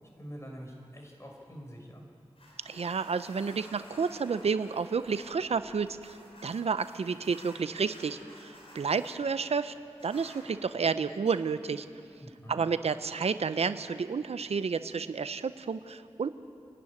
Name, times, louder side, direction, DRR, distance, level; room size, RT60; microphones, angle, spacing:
voice 1, 0.2-2.0 12.2-12.6, equal, 25° left, 1 dB, 5.4 m, -45 dB
sound 1, 2.4-9.2 9.9-10.5 11.2-11.4, equal, 65° left, 5.0 m, -53 dB
voice 2, 2.7-6.2 6.4-9.7 10.0-11.9 12.5-16.3, right 5 dB, 80° right, 12 dB, 0.6 m, -30 dB
26.5 x 11.5 x 9.7 m, 2.5 s
cardioid pair, 45°, 10 cm